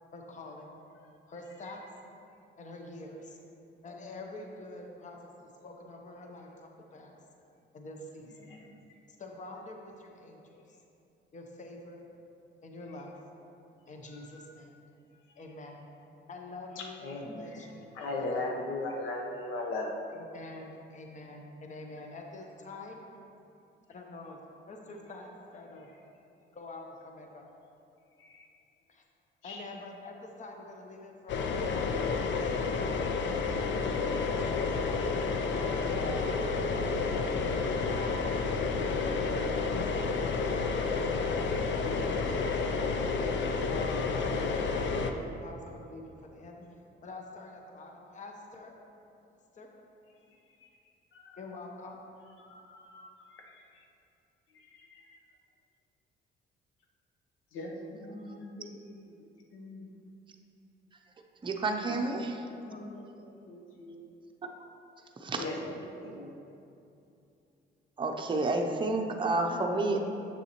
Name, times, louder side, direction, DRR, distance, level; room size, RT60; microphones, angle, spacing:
voice 1, 0.1-0.8 1.3-1.8 2.6-3.4 3.8-5.2 5.6-7.2 7.7-8.5 9.2-10.6 11.3-12.0 12.6-13.1 13.9-14.7 15.4-15.8 16.3-18.5 20.1-23.0 23.9-24.4 24.7-25.9 26.5-27.5 28.9-29.0 29.4-33.4 34.3-37.1 37.6-38.5 38.8-40.5 40.9-41.3 42.0-42.9 43.7-44.0 44.7-46.6 47.0-48.7 49.5-49.7 51.3-52.0 62.7-63.0, left 2 dB, 40° left, 2 dB, 0.8 m, -46 dB
voice 2, 14.1-14.5 16.8-19.9 28.2-28.5 29.4-29.6 37.5-37.6 51.1-51.4 52.4-53.6 54.8-55.0 57.5-59.1 59.5-59.9 61.9-62.0 62.5-64.1 65.3-65.6 66.0-66.3, left 2 dB, 90° left, 1 dB, 0.9 m, -39 dB
sound 1, 31.3-45.1, left 4 dB, 65° left, 0.5 m, -30 dB
voice 3, 61.4-62.4 65.2-65.4 68.0-70.0, right 2 dB, 25° right, 2 dB, 0.6 m, -29 dB
7.3 x 6.8 x 3.0 m, 2.7 s
cardioid pair, 90°, 20 cm